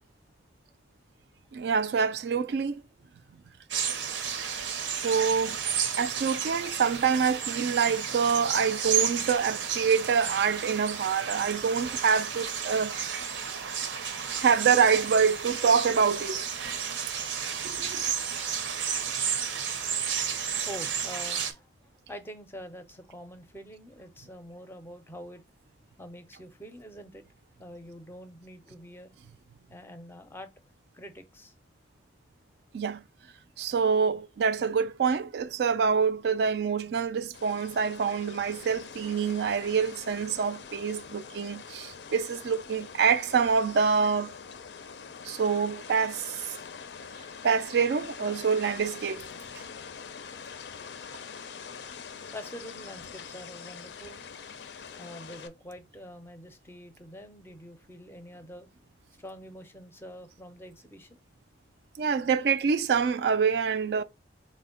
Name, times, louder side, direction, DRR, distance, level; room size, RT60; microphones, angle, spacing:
voice 1, 1.5-2.8 5.0-5.6 6.0-13.0 14.4-16.4 17.1-17.2 17.6-18.0 32.7-33.0 33.6-44.3 45.2-46.4 47.4-49.3 62.0-64.0, right 6 dB, 65° right, 0.3 m, -26 dB
sound 1, 3.7-21.5, right 7 dB, 90° right, 0.7 m, -32 dB
voice 2, 20.7-21.7 22.1-25.4 26.0-27.2 27.6-29.2 29.7-30.5 30.9-31.5 52.3-54.3 54.9-58.7 59.2-61.2, equal, 10° left, 0.5 m, -45 dB
sound 2, 37.3-55.5, left 6 dB, 70° left, 0.4 m, -44 dB
4.3 x 2.1 x 3.7 m
head